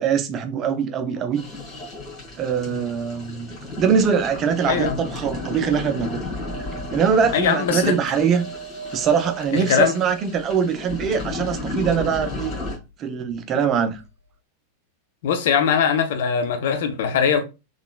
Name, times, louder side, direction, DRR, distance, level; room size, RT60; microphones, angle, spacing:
voice 1, 0.0-1.4 2.3-6.3 6.9-8.5 8.9-12.5 13.0-14.0, right 7 dB, 30° right, 0.6 m, -22 dB
sound 1, 1.4-12.8, left 2 dB, 30° left, 1.6 m, -33 dB
sound 2, 5.3-11.5 13.8-13.9 14.0-14.1, right 5 dB, 90° right, 0.7 m, -40 dB
voice 2, 7.3-8.0 9.5-10.0 15.2-17.4, left 7 dB, 55° left, 0.6 m, -21 dB
3.7 x 3.2 x 2.3 m
figure-of-eight pair, 90°, 0 cm